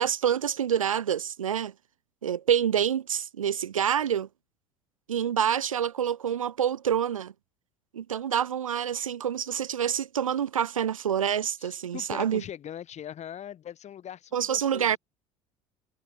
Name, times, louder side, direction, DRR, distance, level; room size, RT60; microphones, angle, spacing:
voice 1, 0.0-1.7 2.2-4.3 5.1-7.3 7.9-12.4 14.3-15.0, right 9 dB, 85° right, 0.9 m, -27 dB
voice 2, 11.6-15.0, left 10 dB, 40° left, 7.0 m, -41 dB
figure-of-eight pair, 65°, 17 cm